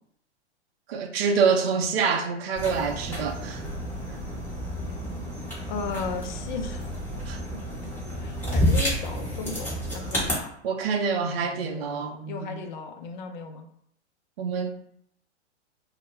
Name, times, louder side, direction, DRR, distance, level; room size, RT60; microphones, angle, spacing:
voice 1, 0.9-3.6 7.3-7.4 10.6-12.7 14.4-14.7, right 5 dB, 60° right, 4 dB, 0.5 m, -26 dB
sound 1, 2.6-10.3, equal, 5° left, 1.0 m, -30 dB
voice 2, 5.7-6.8 7.7-7.9 8.2-10.5 12.3-13.7, left 4 dB, 45° left, 5 dB, 0.4 m, -35 dB
2.1 x 2.1 x 3.1 m, 0.69 s
hypercardioid pair, 110°, 35 cm